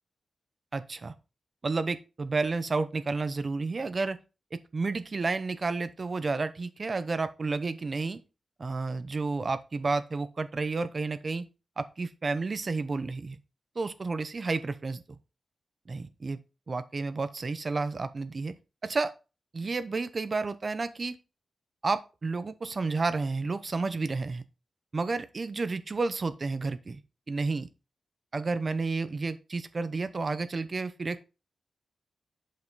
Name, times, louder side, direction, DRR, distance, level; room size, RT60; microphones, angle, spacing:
voice 1, 0.7-1.1 1.6-4.2 4.5-8.2 8.6-11.5 11.8-13.4 13.8-15.0 15.9-16.4 16.7-18.5 18.8-19.1 19.5-21.2 21.8-24.4 24.9-27.0 27.3-27.7 28.3-31.3, right 3 dB, 35° right, 11 dB, 0.7 m, -31 dB
7.6 x 5.5 x 4.0 m, 0.30 s
wide cardioid pair, 160°, 0 cm